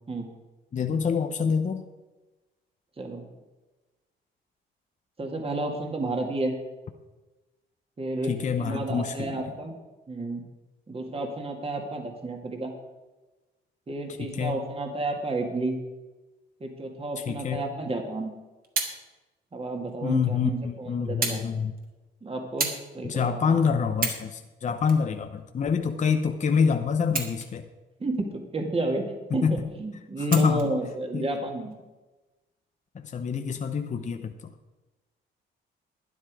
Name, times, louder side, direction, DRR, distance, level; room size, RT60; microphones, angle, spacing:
voice 1, 0.7-1.8 8.3-9.4 14.2-14.6 17.2-17.6 20.0-21.7 23.0-27.6 29.3-29.6 30.3-30.7 31.1-31.3 32.9-34.3, left 6 dB, 40° left, 6 dB, 0.8 m, -26 dB
voice 2, 5.2-6.6 8.0-9.8 10.1-10.4 10.9-12.7 13.9-15.8 16.6-18.3 19.5-21.4 22.2-23.5 28.0-31.8 34.0-34.1, right 2 dB, 30° right, 3 dB, 2.0 m, -31 dB
sound 1, 18.2-19.0 19.9-20.0 21.2-21.5 21.8-22.0 22.6-22.9 23.4-23.5 23.9-24.3 24.8-25.8 27.0-27.7 28.1-28.2 30.3-30.7 31.6-31.7, right 4 dB, 45° right, 2.1 m, -31 dB
12.0 x 9.9 x 4.8 m, 1.1 s
cardioid pair, 90°, 20 cm